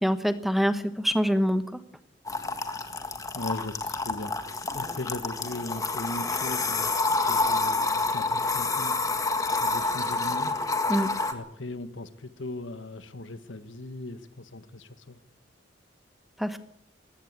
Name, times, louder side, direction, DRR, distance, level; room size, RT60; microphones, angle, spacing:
voice 1, 0.0-1.6 10.9-11.1 16.4-16.6, equal, ahead, 11 dB, 1.0 m, -25 dB
sound 1, 2.3-11.3, left 3 dB, 15° left, 1.7 m, -28 dB
voice 2, 3.3-4.4 4.7-8.9 9.6-10.6 11.3-15.2, left 2 dB, 70° left, 12 dB, 1.5 m, -38 dB
20.5 x 16.5 x 8.2 m, 0.70 s
head